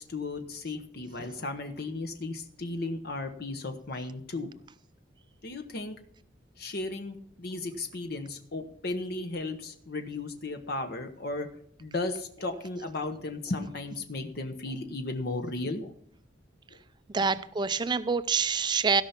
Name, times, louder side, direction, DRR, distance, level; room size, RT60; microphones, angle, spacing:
voice 1, 0.0-4.5 5.4-6.0 6.6-11.5 11.8-15.9 17.2-17.3, left 2 dB, 55° left, 6 dB, 1.0 m, -35 dB
voice 2, 17.1-19.0, right 5 dB, 25° right, 13 dB, 0.4 m, -26 dB
16.0 x 5.7 x 5.8 m, 0.63 s
head